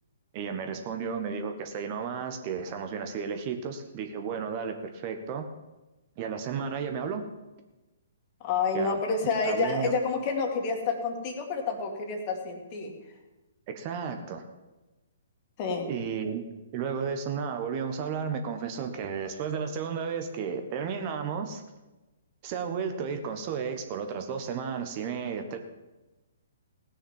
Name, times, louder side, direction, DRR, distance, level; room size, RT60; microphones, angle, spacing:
voice 1, 0.3-5.4 6.2-7.2 8.7-9.0 9.4-10.0 13.7-14.4 15.8-16.4 16.7-21.6 22.4-25.6, right 6 dB, 35° right, 6 dB, 1.3 m, -33 dB
voice 2, 8.4-12.9 15.6-15.9, left 4 dB, 35° left, 3 dB, 2.2 m, -29 dB
17.5 x 6.5 x 7.3 m, 1.1 s
figure-of-eight pair, 125°, 0 cm